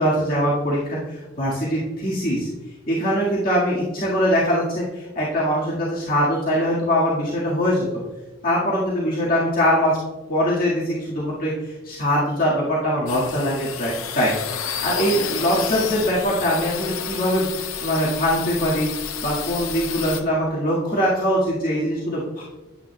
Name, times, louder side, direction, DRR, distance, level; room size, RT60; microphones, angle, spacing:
voice 1, 0.0-2.5 2.9-7.9 8.4-10.0 10.3-14.4 14.8-22.4, equal, 45° left, -7 dB, 1.8 m, -22 dB
sound 1, 13.1-20.2, left 8 dB, 90° left, 0.7 m, -31 dB
9.8 x 8.5 x 2.2 m, 1.1 s
head